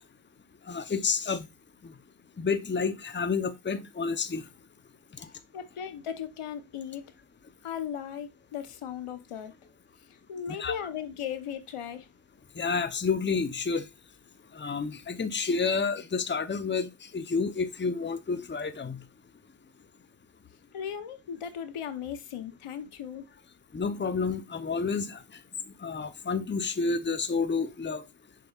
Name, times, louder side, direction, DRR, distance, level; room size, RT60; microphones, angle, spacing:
voice 1, 0.7-1.5 1.8-1.9 2.4-4.5 5.2-5.3 10.6-10.7 12.6-13.8 14.5-19.0 23.7-25.2 25.8-28.0, left 5 dB, 20° left, 0.7 m, -30 dB
voice 2, 5.5-7.1 7.6-9.5 10.1-12.1 20.7-23.2, left 8 dB, 85° left, 1.0 m, -37 dB
7.5 x 5.4 x 2.4 m
cardioid pair, 80°, 50 cm